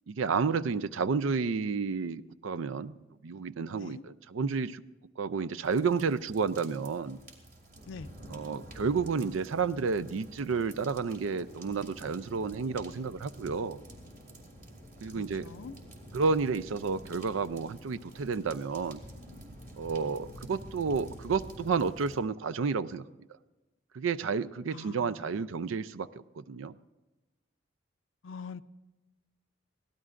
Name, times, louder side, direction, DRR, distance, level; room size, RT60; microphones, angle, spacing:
voice 1, 0.1-2.9 3.2-4.8 5.2-7.2 8.3-13.8 15.0-15.5 16.1-19.0 19.8-23.0 23.9-26.8, right 5 dB, 90° right, 0.5 m, -31 dB
sound 1, 5.6-22.2, equal, 45° right, 2.5 m, -49 dB
voice 2, 15.1-15.8 24.7-25.3 28.2-28.6, left 5 dB, 75° left, 0.5 m, -44 dB
23.5 x 17.0 x 2.5 m
head